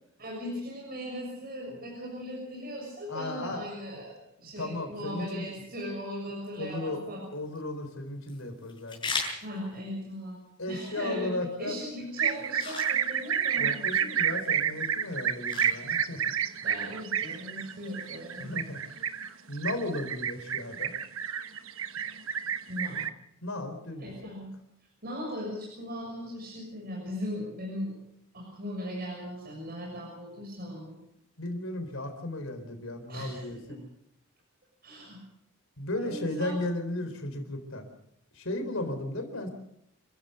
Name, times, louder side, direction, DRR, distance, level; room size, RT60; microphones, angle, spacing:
voice 1, 0.2-7.2 9.4-10.4 10.7-13.7 16.6-18.5 18.9-19.0 22.1-22.2 22.7-23.1 24.0-24.5 25.0-27.9 28.3-31.0 33.1-33.8 34.8-35.2 35.9-36.5 37.0-37.1, equal, 45° right, -2 dB, 6.7 m, -38 dB
voice 2, 3.1-3.6 4.6-5.4 6.6-7.0 7.3-9.1 10.6-11.7 13.6-16.2 18.4-18.8 19.5-20.9 23.4-24.1 31.4-33.8 35.8-37.8 38.3-39.5, left 1 dB, 70° left, 6 dB, 4.1 m, -35 dB
sound 1, 7.2-20.2, left 3 dB, 20° left, 7.6 m, -44 dB
sound 2, 12.2-23.1, right 8 dB, 70° right, 1.2 m, -30 dB
28.0 x 15.5 x 6.9 m, 0.76 s
head